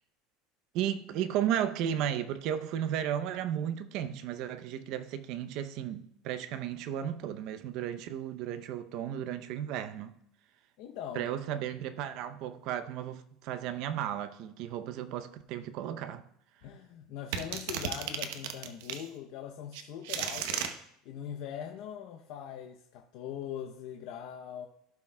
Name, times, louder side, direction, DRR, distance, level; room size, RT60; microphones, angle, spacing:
voice 1, 0.7-10.1 11.1-16.2, right 10 dB, 50° right, 0.6 m, -34 dB
voice 2, 10.8-11.3 16.6-20.7 21.0-24.7, left 9 dB, 55° left, 0.6 m, -41 dB
sound 1, 17.3-19.1 19.7-20.7, right 8 dB, 80° right, 0.8 m, -34 dB
16.0 x 5.9 x 2.2 m
cardioid pair, 165°, 0 cm